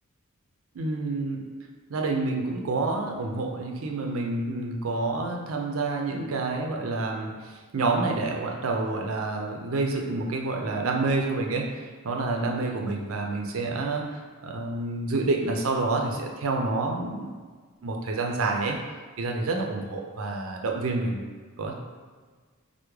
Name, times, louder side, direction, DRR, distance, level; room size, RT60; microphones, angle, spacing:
voice 1, 0.7-1.4 1.9-14.0 14.4-17.3 17.8-18.8 19.2-21.2 21.6-21.7, right 3 dB, 70° right, 1 dB, 0.4 m, -28 dB
3.4 x 2.1 x 3.1 m, 1.5 s
head